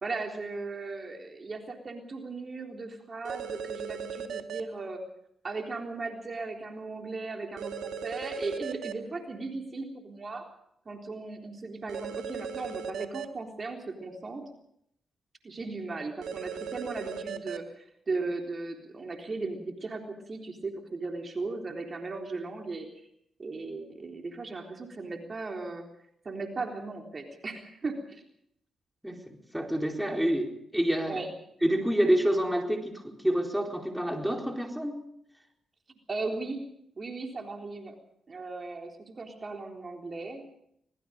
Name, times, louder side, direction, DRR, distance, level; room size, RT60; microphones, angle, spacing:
voice 1, 0.0-5.0 5.4-10.5 10.9-14.4 15.4-22.9 23.4-25.9 26.2-28.2 31.1-31.3 36.1-36.7 37.0-38.0 38.3-40.4, right 3 dB, 45° right, 3 dB, 3.7 m, -37 dB
sound 1, 3.2-4.6 7.6-8.9 11.9-13.2 16.2-17.6, right 7 dB, 75° right, 2.1 m, -37 dB
voice 2, 29.0-31.2 31.6-35.0, equal, 5° right, 2 dB, 4.4 m, -28 dB
25.0 x 21.0 x 5.2 m, 0.72 s
supercardioid pair, 50°, 0 cm